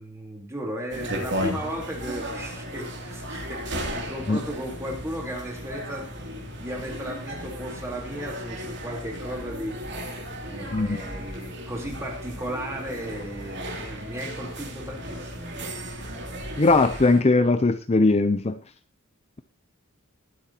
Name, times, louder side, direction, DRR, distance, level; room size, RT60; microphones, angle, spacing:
voice 1, 0.0-10.0 10.4-16.2, equal, 15° right, 0 dB, 3.7 m, -36 dB
sound 1, 0.9-17.2, equal, 60° right, 2.9 m, -35 dB
voice 2, 16.6-18.6, left 3 dB, 30° left, 9 dB, 0.6 m, -20 dB
21.5 x 7.8 x 2.9 m, 0.33 s
head